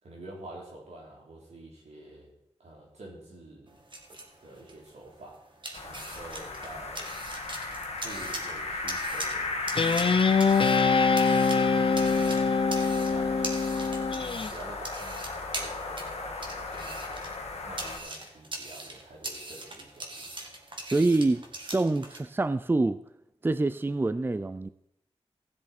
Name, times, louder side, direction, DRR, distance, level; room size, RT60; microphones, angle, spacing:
voice 1, 0.0-2.3 2.6-3.8 4.4-5.4 5.8-7.0 8.0-12.4 12.7-17.2 17.6-20.3, right 2 dB, 90° right, -3 dB, 3.4 m, -48 dB
sound 1, 3.7-22.2, right 2 dB, 45° right, 1.9 m, -42 dB
sound 2, 5.7-18.0, left 3 dB, 75° left, 1.7 m, -36 dB
Guitar, 9.8-14.5, left 5 dB, 50° left, 0.6 m, -24 dB
voice 2, 20.9-21.4 21.7-23.0 23.4-24.7, right 2 dB, 20° right, 13 dB, 0.4 m, -26 dB
16.0 x 7.4 x 4.3 m, 0.77 s
wide cardioid pair, 75°, 11 cm